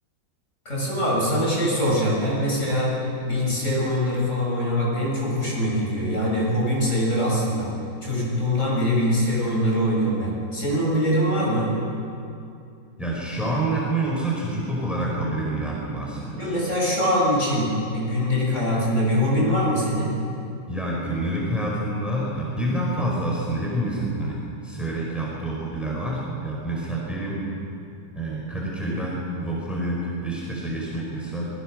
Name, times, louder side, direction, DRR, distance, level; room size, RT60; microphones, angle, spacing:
voice 1, 0.7-2.9 3.3-7.7 8.0-11.7 16.4-20.1, equal, 40° left, -5 dB, 7.6 m, -23 dB
voice 2, 13.0-16.5 20.7-24.4 24.6-27.4 28.1-31.5, right 1 dB, ahead, -4 dB, 5.3 m, -27 dB
27.0 x 21.0 x 6.6 m, 2.6 s
omnidirectional pair, 2.0 m